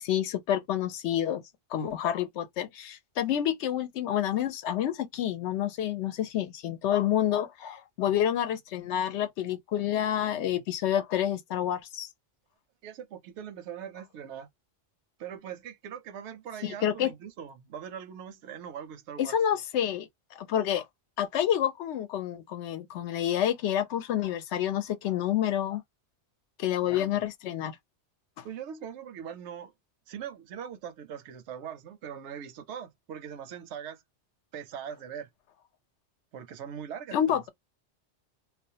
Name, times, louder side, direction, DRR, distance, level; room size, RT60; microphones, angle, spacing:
voice 1, 0.0-1.4 1.7-12.1 16.6-17.1 19.2-20.8 21.2-25.8 26.6-27.8 28.4-28.5 37.1-37.5, left 10 dB, 85° left, 0.9 m, -28 dB
voice 2, 12.8-14.5 15.2-19.4 26.8-27.3 28.4-29.7 30.1-34.0 34.5-35.3 36.3-37.5, right 8 dB, 90° right, 0.9 m, -41 dB
2.4 x 2.1 x 2.6 m
omnidirectional pair, 1.1 m